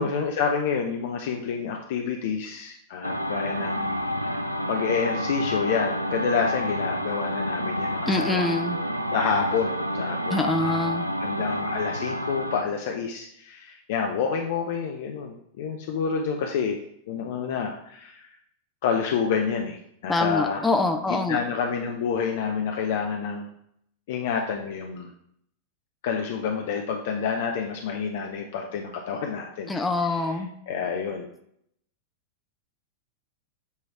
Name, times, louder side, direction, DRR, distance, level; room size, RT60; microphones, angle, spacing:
voice 1, 0.0-4.0 4.7-8.5 9.1-10.8 11.2-16.8 17.1-18.3 18.8-20.7 21.1-23.5 24.1-25.1 26.0-30.4 30.7-31.3, left 6 dB, 55° left, 2 dB, 0.7 m, -28 dB
sound 1, 3.0-12.6, equal, 90° right, 0.4 m, -29 dB
voice 2, 8.1-8.8 10.3-11.0 20.1-21.4 29.7-30.5, left 2 dB, 10° left, 4 dB, 0.7 m, -25 dB
8.4 x 3.2 x 4.9 m, 0.70 s
figure-of-eight pair, 90°, 0 cm